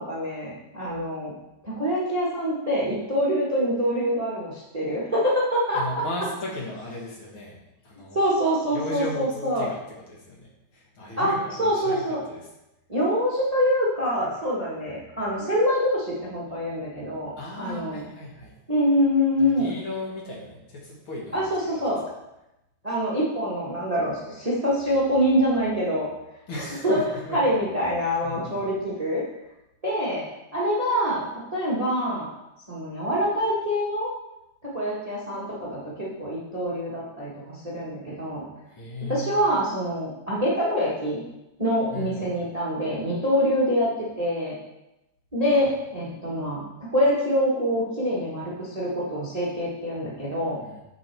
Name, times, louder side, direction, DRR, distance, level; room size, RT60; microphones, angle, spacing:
voice 1, 0.0-1.3 1.6-6.0 8.1-9.7 11.2-11.3 11.6-12.2 12.9-18.0 18.7-19.7 21.3-22.0 22.8-26.1 26.8-27.0 27.3-29.2 29.8-30.3 30.5-32.3 32.7-34.1 34.6-38.5 39.1-41.2 41.6-44.5 45.3-50.6, equal, 85° right, -6 dB, 0.3 m, -25 dB
voice 2, 5.7-7.6 7.8-8.2 8.7-12.5 17.4-18.5 19.4-21.8 26.5-27.5 28.2-28.7 38.7-39.4 41.9-42.3 50.6-50.8, left 2 dB, 45° left, -3 dB, 2.0 m, -36 dB
7.5 x 6.4 x 4.7 m, 0.92 s
omnidirectional pair, 3.7 m